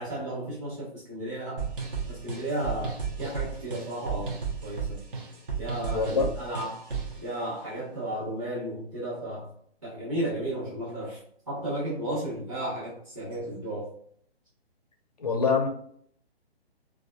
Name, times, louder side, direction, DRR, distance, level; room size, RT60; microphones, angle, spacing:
voice 1, 0.0-1.7 2.1-5.0 5.6-6.9 7.2-9.5 9.8-11.2 11.5-13.9, right 1 dB, 30° right, -8 dB, 1.2 m, -34 dB
sound 1, 1.6-7.2, right 6 dB, 55° right, 0.8 m, -34 dB
voice 2, 5.9-6.3 15.2-15.7, left 4 dB, 40° left, 4 dB, 0.4 m, -24 dB
2.5 x 2.3 x 2.3 m, 0.64 s
hypercardioid pair, 160°, 32 cm